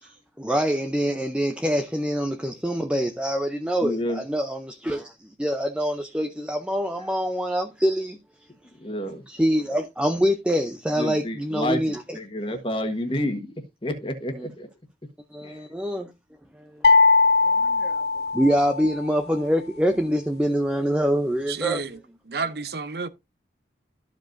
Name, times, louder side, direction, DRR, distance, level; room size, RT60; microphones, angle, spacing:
voice 1, 0.0-8.2 9.3-12.2 14.3-14.5 15.3-16.1 16.6-16.7 17.4-18.0 18.3-21.8, equal, 5° right, 0.6 m, -25 dB
voice 2, 3.8-4.2 8.8-9.2 11.0-11.8 12.1-13.5 13.8-14.7 15.4-15.6, left 1 dB, 30° left, 1.5 m, -29 dB
sound 1, 16.8-19.0, left 4 dB, 60° left, 0.5 m, -19 dB
voice 3, 21.5-22.0 22.3-23.1, right 4 dB, 60° right, 0.7 m, -30 dB
13.5 x 5.2 x 2.6 m
head